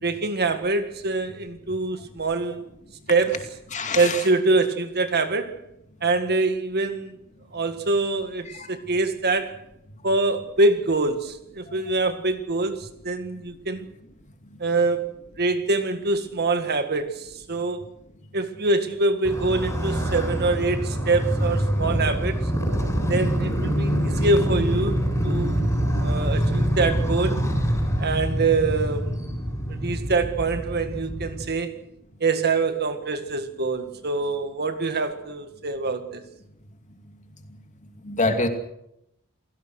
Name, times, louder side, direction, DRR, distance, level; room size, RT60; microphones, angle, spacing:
voice 1, 0.0-2.7 3.1-3.5 4.0-5.6 6.0-7.2 7.5-9.6 10.0-13.9 14.6-15.0 15.4-17.8 18.3-22.5 23.1-25.7 26.0-27.4 28.0-29.2 29.7-31.7 32.2-36.2, right 3 dB, 50° right, 1.9 m, -24 dB
voice 2, 3.7-4.2 8.6-8.7 38.1-38.5, left 3 dB, 35° left, 2.6 m, -24 dB
Motorcycle, 19.2-31.5, equal, 15° left, 6.8 m, -25 dB
28.5 x 17.0 x 6.5 m
head